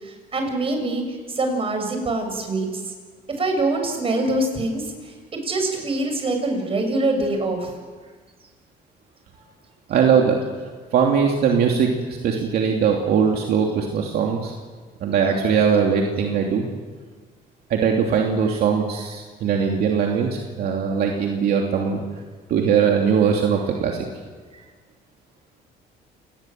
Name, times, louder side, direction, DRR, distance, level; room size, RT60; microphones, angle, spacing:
voice 1, 0.0-2.8 3.4-7.7 24.5-24.6, right 2 dB, 35° right, 4 dB, 7.0 m, -24 dB
voice 2, 9.9-10.4 10.9-14.5 15.0-16.7 17.7-22.0 22.5-24.0, right 6 dB, 65° right, 1 dB, 2.9 m, -20 dB
28.5 x 19.5 x 7.8 m, 1.4 s
cardioid pair, 110°, 17 cm